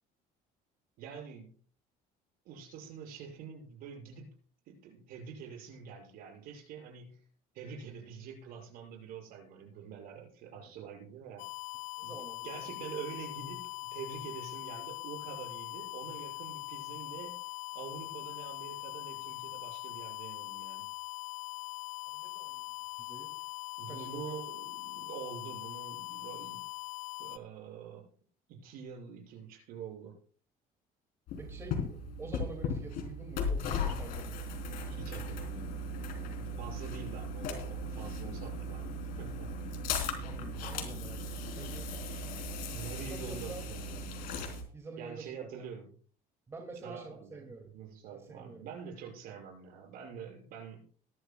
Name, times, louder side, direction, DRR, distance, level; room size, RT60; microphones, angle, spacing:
voice 1, 1.0-1.5 2.4-4.3 4.7-7.2 7.5-11.5 12.0-12.2 12.4-17.3 17.7-20.9 23.8-26.6 27.2-28.1 28.5-30.2 34.9-35.8 36.6-39.5 42.7-44.2 45.0-46.0 46.8-50.8, right 7 dB, 60° right, 1 dB, 6.4 m, -46 dB
sound 1, 11.4-27.4, left 20 dB, 45° left, 0.7 m, -42 dB
voice 2, 12.0-12.7 22.1-22.6 23.0-23.3 23.9-24.4 31.4-34.4 36.2-36.7 39.7-41.2 41.6-41.9 43.0-43.6 44.7-45.5 46.5-47.7 48.1-48.7, right 3 dB, 15° right, 3 dB, 2.2 m, -47 dB
sound 2, 31.3-44.6, left 2 dB, 60° left, 3.5 m, -37 dB
21.0 x 12.0 x 2.3 m, 0.42 s
cardioid pair, 170°, 17 cm